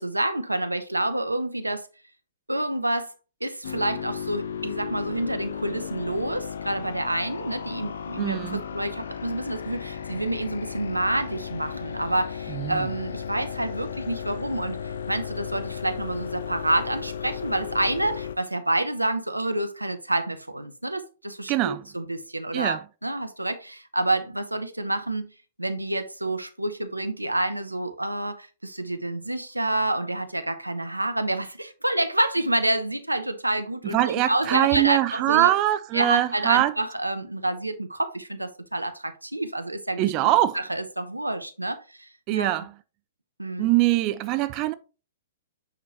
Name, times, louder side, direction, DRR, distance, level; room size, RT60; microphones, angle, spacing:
voice 1, 0.0-1.9 2.5-3.1 3.4-25.3 25.6-35.5 35.9-42.6 43.4-43.7, right 1 dB, 90° right, 0.9 m, -28 dB
sound 1, 3.6-18.4, left 7 dB, 65° left, 0.6 m, -35 dB
voice 2, 8.2-8.6 12.5-12.9 21.5-21.8 22.5-22.8 33.8-36.7 40.0-40.6 42.3-42.7 43.6-44.7, right 15 dB, 35° right, 0.4 m, -23 dB
8.3 x 5.0 x 2.9 m
figure-of-eight pair, 110°, 0 cm